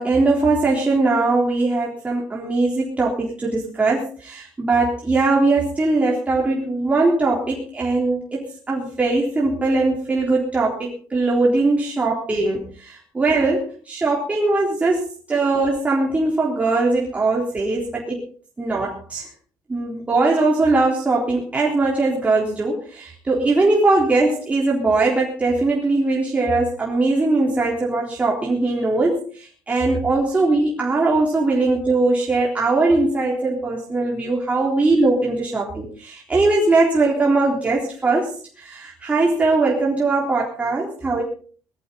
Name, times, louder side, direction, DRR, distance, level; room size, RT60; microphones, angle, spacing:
voice 1, 0.0-18.2 18.6-19.3 19.7-41.2, right 3 dB, 20° right, -3 dB, 3.7 m, -20 dB
20.0 x 14.0 x 4.1 m, 0.42 s
cardioid pair, 125°, 7 cm